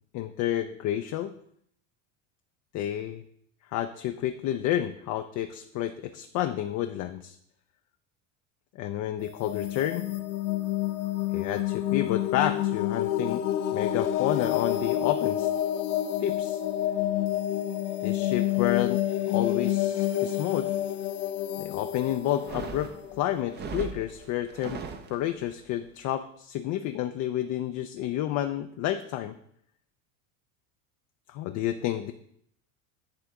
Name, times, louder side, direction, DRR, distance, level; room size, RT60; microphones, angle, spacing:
voice 1, 0.1-1.3 2.7-3.2 3.7-7.4 8.8-10.1 11.3-13.4 13.7-15.5 16.2-16.6 18.0-20.7 21.6-22.9 23.2-24.8 25.1-29.3 31.3-32.1, left 12 dB, 45° left, 8 dB, 0.4 m, -30 dB
sound 1, 9.2-23.9, left 12 dB, 85° left, 0.7 m, -29 dB
sound 2, 22.3-25.6, right 6 dB, 25° right, 0.5 m, -39 dB
9.6 x 3.4 x 3.6 m, 0.70 s
supercardioid pair, 95°, 43 cm